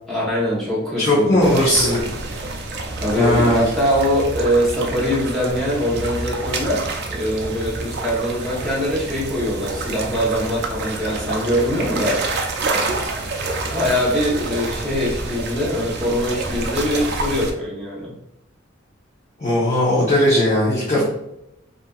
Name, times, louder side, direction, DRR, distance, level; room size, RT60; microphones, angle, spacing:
voice 1, 0.1-1.7 3.0-6.8 7.1-12.2 13.7-18.1 20.9-21.0, equal, ahead, -7 dB, 0.9 m, -22 dB
voice 2, 1.0-2.0 3.1-3.7 19.4-21.0, left 1 dB, 35° left, -8 dB, 0.7 m, -18 dB
sound 1, 1.4-17.5, right 2 dB, 55° right, 0.4 m, -28 dB
2.7 x 2.5 x 2.3 m, 0.83 s
head